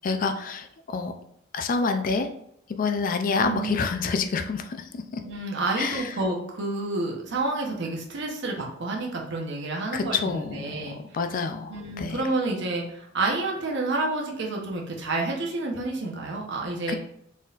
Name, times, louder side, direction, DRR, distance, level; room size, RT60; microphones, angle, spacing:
voice 1, 0.0-1.1 1.5-2.3 2.7-5.2 5.8-6.1 9.9-12.2 16.9-17.0, left 4 dB, 45° left, 8 dB, 0.4 m, -28 dB
voice 2, 3.4-3.8 5.2-11.0 11.7-17.0, right 2 dB, 60° right, 0 dB, 0.9 m, -29 dB
4.1 x 3.8 x 2.4 m, 0.74 s
head